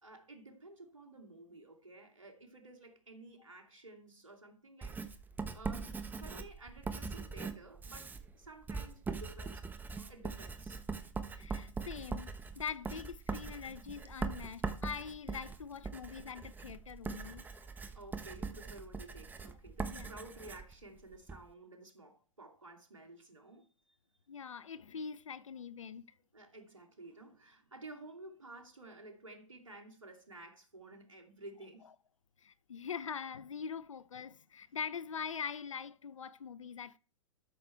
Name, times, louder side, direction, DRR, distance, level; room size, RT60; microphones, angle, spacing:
voice 1, 0.0-5.0 5.5-10.8 17.9-24.0 26.3-31.9, right 2 dB, 85° right, 2.7 m, -53 dB
Writing, 4.8-21.4, right 4 dB, 10° right, 1.1 m, -42 dB
voice 2, 11.3-17.4 19.9-20.1 24.3-26.1 32.4-37.0, left 6 dB, 80° left, 0.8 m, -43 dB
13.0 x 6.6 x 4.5 m
hypercardioid pair, 115°, 16 cm